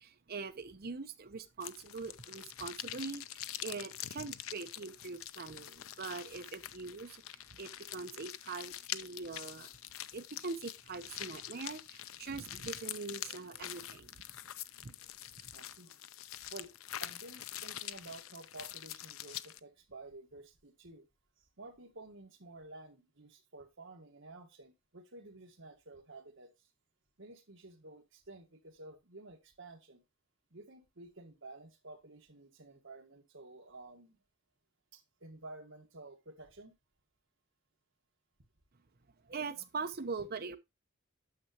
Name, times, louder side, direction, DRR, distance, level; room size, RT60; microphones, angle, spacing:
voice 1, 0.0-9.7 10.1-14.2 14.8-14.9 39.3-40.6, right 4 dB, 50° right, 0.8 m, -43 dB
sound 1, 1.6-19.6, left 12 dB, 85° left, 0.5 m, -45 dB
voice 2, 15.5-16.0 16.5-16.7 17.0-21.1 21.6-26.5 27.2-30.0 30.5-34.2 34.9-36.7, right 2 dB, 65° right, 1.7 m, -52 dB
9.4 x 7.0 x 2.9 m
head